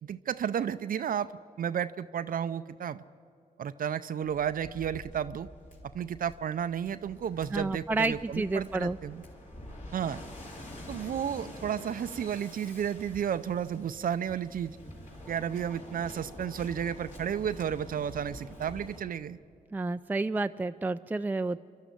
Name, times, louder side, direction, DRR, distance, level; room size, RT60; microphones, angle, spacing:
voice 1, 0.0-1.3 1.6-3.0 3.6-5.5 5.8-9.2 9.9-10.2 10.9-14.8 15.3-19.4, right 8 dB, 65° right, 11 dB, 0.5 m, -32 dB
Waves surf, 4.2-19.0, left 1 dB, 50° left, 3.7 m, -47 dB
voice 2, 7.5-9.0 19.7-21.6, right 3 dB, 10° right, 9 dB, 0.4 m, -30 dB
26.5 x 12.0 x 8.2 m, 2.3 s
cardioid pair, 55°, 16 cm